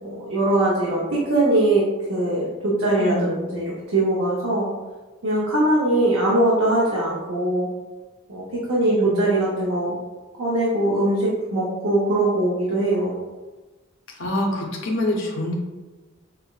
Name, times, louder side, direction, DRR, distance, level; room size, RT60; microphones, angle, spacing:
voice 1, 0.0-4.7 5.2-7.7 8.3-10.0 10.4-13.1, right 1 dB, 85° right, -6 dB, 0.7 m, -21 dB
voice 2, 8.8-9.2 14.2-15.5, left 1 dB, 70° left, -1 dB, 0.6 m, -25 dB
5.5 x 2.0 x 2.3 m, 1.2 s
head